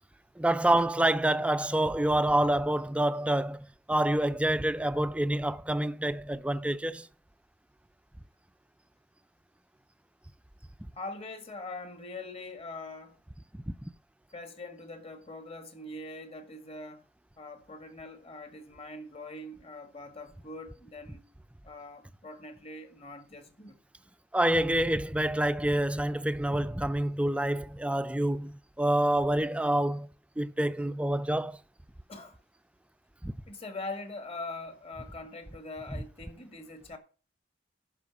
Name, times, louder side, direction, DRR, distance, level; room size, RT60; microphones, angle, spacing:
voice 1, 0.4-7.1 13.7-13.8 24.3-30.1 30.4-31.6 33.2-33.3, right 1 dB, 5° right, 0.4 m, -27 dB
voice 2, 10.9-13.2 14.3-17.1 17.4-21.3 21.6-23.8 32.1-32.4 33.5-37.0, left 2 dB, 30° left, 1.8 m, -42 dB
11.5 x 4.9 x 7.1 m
head